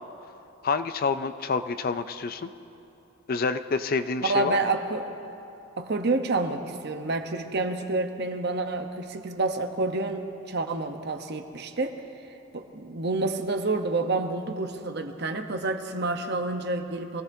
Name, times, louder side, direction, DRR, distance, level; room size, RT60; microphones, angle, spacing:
voice 1, 0.6-2.5 3.3-4.6, left 4 dB, 40° left, 11 dB, 0.4 m, -27 dB
voice 2, 4.2-5.1 5.8-12.0 12.5-17.2, right 3 dB, 50° right, 6 dB, 0.9 m, -28 dB
24.5 x 16.5 x 2.7 m, 2.9 s
head